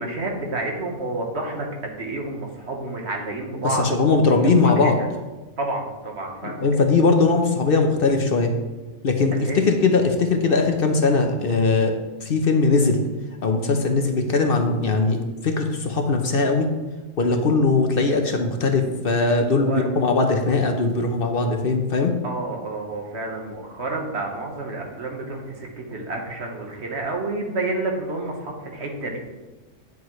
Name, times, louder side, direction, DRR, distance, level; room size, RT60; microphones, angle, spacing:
voice 1, 0.0-4.2 4.6-4.9 5.6-6.6 9.4-9.6 19.6-19.8 22.2-29.2, right 2 dB, 60° right, 1 dB, 1.5 m, -29 dB
voice 2, 3.6-5.0 6.4-8.5 9.0-11.9 12.2-13.0 13.4-16.7 17.2-22.1, left 3 dB, 55° left, 4 dB, 0.9 m, -20 dB
9.2 x 7.2 x 3.1 m, 1.2 s
omnidirectional pair, 1.3 m